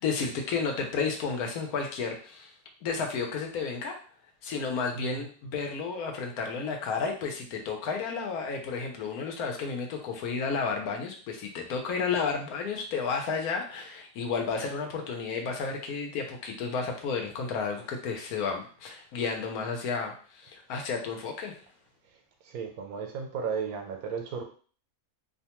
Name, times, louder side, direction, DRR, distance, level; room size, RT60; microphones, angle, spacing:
voice 1, 0.0-2.5 2.8-3.9 4.4-21.6, left 5 dB, 85° left, 2 dB, 1.2 m, -32 dB
voice 2, 4.9-5.3 22.5-24.4, right 6 dB, 90° right, 4 dB, 1.1 m, -34 dB
2.7 x 2.2 x 2.9 m, 0.42 s
omnidirectional pair, 1.5 m